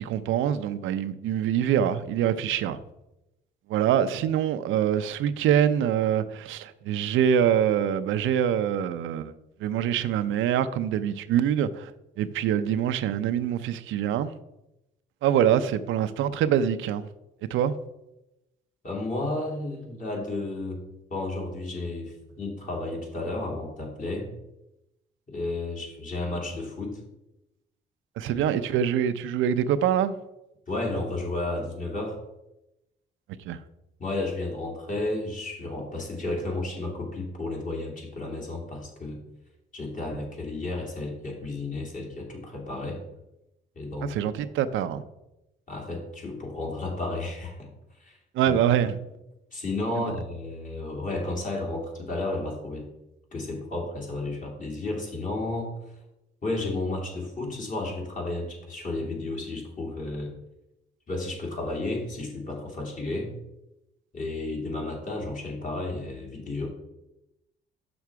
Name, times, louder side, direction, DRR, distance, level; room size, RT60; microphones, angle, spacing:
voice 1, 0.0-2.8 3.7-9.3 9.6-11.9 12.2-14.3 15.2-17.1 17.5-17.7 28.2-30.1 33.5-33.6 44.0-45.0 48.3-49.0 50.0-50.1, right 9 dB, 85° right, 0.5 m, -25 dB
voice 2, 18.8-20.8 21.1-24.3 25.3-27.0 28.3-28.8 30.7-32.2 34.0-39.2 39.7-43.0 43.8-44.2 45.7-47.7 48.0-48.2 48.5-48.9 49.5-52.9 53.3-55.7 56.4-60.4 61.1-63.3 64.1-66.7, left 2 dB, 40° left, 2.6 m, -32 dB
6.5 x 6.1 x 4.6 m
cardioid pair, 90°, 20 cm